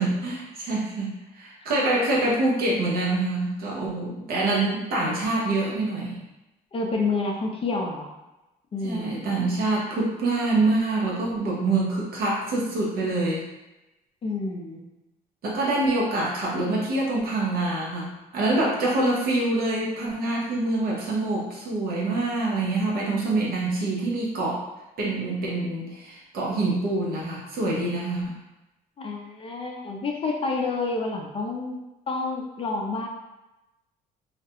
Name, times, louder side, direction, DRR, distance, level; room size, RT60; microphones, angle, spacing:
voice 1, 0.0-6.2 8.8-13.5 15.4-24.6 25.0-28.4, right 2 dB, 60° right, -4 dB, 0.7 m, -25 dB
voice 2, 6.7-8.1 8.7-9.5 14.2-14.8 29.0-31.8 32.1-33.1, left 3 dB, 35° left, 0 dB, 0.5 m, -29 dB
2.4 x 2.1 x 2.8 m, 0.98 s
cardioid pair, 110°, 17 cm